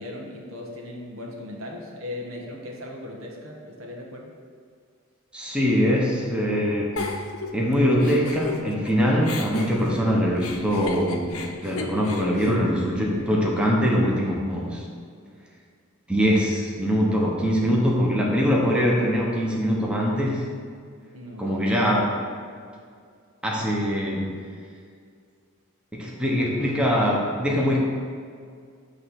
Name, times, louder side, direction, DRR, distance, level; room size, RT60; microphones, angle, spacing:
voice 1, 0.0-4.3 21.1-21.6, left 1 dB, 75° right, -1 dB, 1.2 m, -38 dB
voice 2, 5.3-7.0 7.5-14.9 16.1-20.4 21.4-22.0 23.4-24.3 25.9-27.8, equal, 5° right, -3 dB, 1.0 m, -23 dB
Giggle, 7.0-8.9 9.2-13.5, left 4 dB, 90° left, 0.8 m, -35 dB
8.4 x 3.3 x 6.4 m, 2.1 s
head